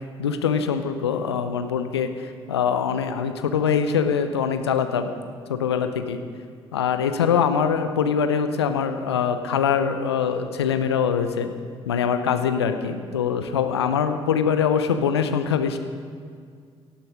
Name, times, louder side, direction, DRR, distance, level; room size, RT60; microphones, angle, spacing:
voice 1, 0.2-5.1 5.5-6.2 6.7-11.5 11.8-15.8, left 7 dB, 85° left, 8 dB, 0.8 m, -23 dB
17.5 x 13.0 x 5.2 m, 2.1 s
figure-of-eight pair, 45°, 13 cm